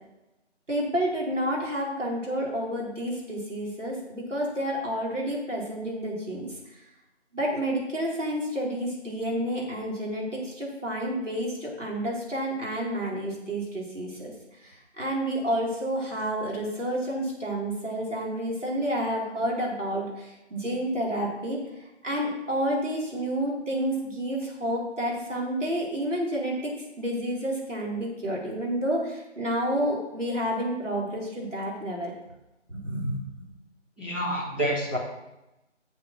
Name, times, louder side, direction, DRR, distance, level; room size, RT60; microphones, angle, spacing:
voice 1, 0.7-6.8 7.3-14.3 14.6-21.6 22.0-32.1 32.7-33.2, equal, 85° right, -3 dB, 4.3 m, -30 dB
voice 2, 34.0-35.0, right 1 dB, 10° right, -9 dB, 1.1 m, -28 dB
7.9 x 7.0 x 6.1 m, 0.95 s
figure-of-eight pair, 170°, 36 cm